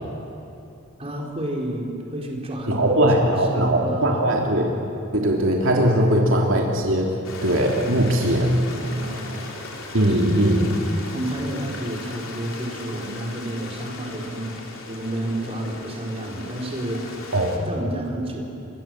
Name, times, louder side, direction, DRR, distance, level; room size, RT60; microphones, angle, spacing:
voice 1, 1.0-3.1 3.4-4.5 6.0-6.3 8.8-9.5 10.1-10.2 11.1-17.3 17.6-18.4, right 1 dB, 30° right, -1 dB, 4.2 m, -31 dB
voice 2, 2.7-4.7 5.1-7.1 7.4-8.7 9.9-10.7 17.3-17.6, right 1 dB, 65° right, 0 dB, 3.0 m, -20 dB
Stream, 7.2-17.6, left 3 dB, 65° left, 3.7 m, -38 dB
29.0 x 25.0 x 7.7 m, 2.7 s
head